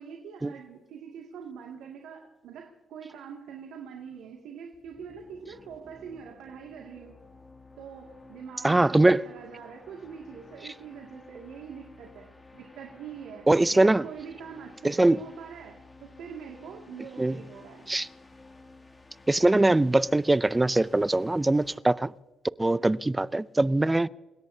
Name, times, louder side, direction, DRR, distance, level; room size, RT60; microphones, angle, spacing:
voice 1, 0.0-7.2 7.8-13.5 13.7-17.9 22.7-22.9, right 7 dB, 85° right, 2.3 m, -44 dB
sound 1, 4.7-21.8, left 3 dB, 20° left, 2.5 m, -53 dB
voice 2, 8.6-9.3 13.5-14.0 14.8-15.2 17.2-17.4 17.9-18.1 19.3-22.1 22.6-24.1, right 2 dB, 15° right, 0.5 m, -22 dB
29.5 x 17.5 x 2.8 m
cardioid pair, 90°, 0 cm